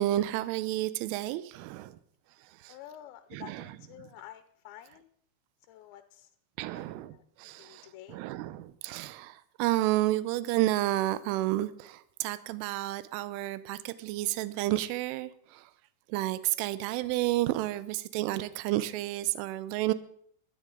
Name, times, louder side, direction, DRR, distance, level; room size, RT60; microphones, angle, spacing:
voice 1, 0.0-2.0 2.4-2.8 3.3-4.1 6.6-15.7 16.1-19.9, right 16 dB, 85° right, 15 dB, 3.1 m, -31 dB
voice 2, 2.7-5.1 5.7-6.3 6.7-7.2 7.6-8.2, left 12 dB, 80° left, 10 dB, 2.6 m, -50 dB
20.0 x 13.0 x 3.8 m, 0.64 s
omnidirectional pair, 5.7 m